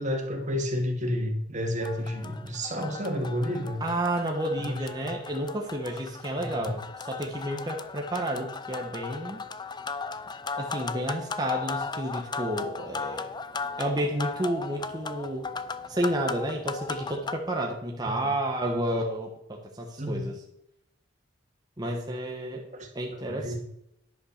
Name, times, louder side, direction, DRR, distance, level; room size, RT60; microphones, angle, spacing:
voice 1, 0.0-3.9 4.6-5.1 6.4-6.7 18.2-18.3 20.0-20.4 22.8-22.9 23.3-23.6, equal, 40° right, 2 dB, 2.2 m, -31 dB
sound 1, 1.8-17.4, left 4 dB, 25° left, 0.5 m, -37 dB
voice 2, 3.8-9.4 10.6-13.3 13.8-15.5 15.9-20.4 21.8-22.7 22.9-23.5, right 1 dB, 20° right, 1 dB, 1.2 m, -31 dB
10.5 x 5.8 x 6.6 m, 0.79 s
head